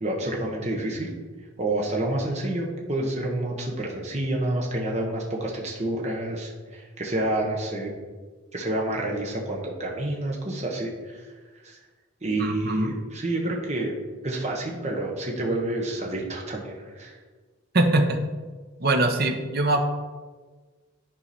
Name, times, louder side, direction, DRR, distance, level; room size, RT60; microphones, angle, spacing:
voice 1, 0.0-1.1 1.6-7.9 8.5-11.2 11.6-11.8 12.2-14.0 14.2-17.2, right 1 dB, 35° right, -1 dB, 1.0 m, -29 dB
voice 2, 12.4-12.9 17.7-18.2 18.8-19.9, right 2 dB, 50° right, 4 dB, 0.8 m, -22 dB
10.0 x 4.9 x 4.2 m, 1.4 s
head